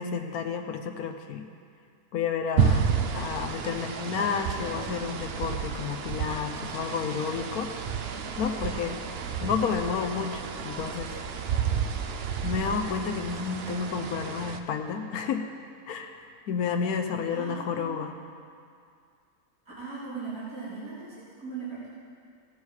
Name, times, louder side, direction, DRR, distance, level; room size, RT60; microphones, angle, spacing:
voice 1, 0.0-1.5 2.1-2.9 3.1-7.7 8.4-9.0 9.4-11.1 12.4-15.4 15.9-16.2 16.5-18.1, left 6 dB, 85° left, 5 dB, 1.2 m, -31 dB
sound 1, 2.6-14.6, right 6 dB, 55° right, 0.7 m, -31 dB
voice 2, 17.3-17.9 19.8-21.9, right 4 dB, 75° right, -11 dB, 3.8 m, -38 dB
17.0 x 8.3 x 4.8 m, 2.3 s
omnidirectional pair, 1.6 m